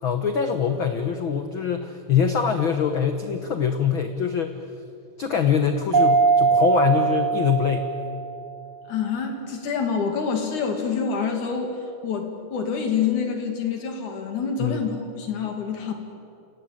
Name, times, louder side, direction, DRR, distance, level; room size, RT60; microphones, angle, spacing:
voice 1, 0.0-4.6 5.2-7.9 14.6-14.8, left 7 dB, 80° left, 7 dB, 1.1 m, -23 dB
Mallet percussion, 5.9-8.5, right 5 dB, 40° right, 1.1 m, -21 dB
voice 2, 8.9-15.9, left 6 dB, 65° left, 4 dB, 3.8 m, -27 dB
28.0 x 18.0 x 8.7 m, 2.5 s
omnidirectional pair, 3.9 m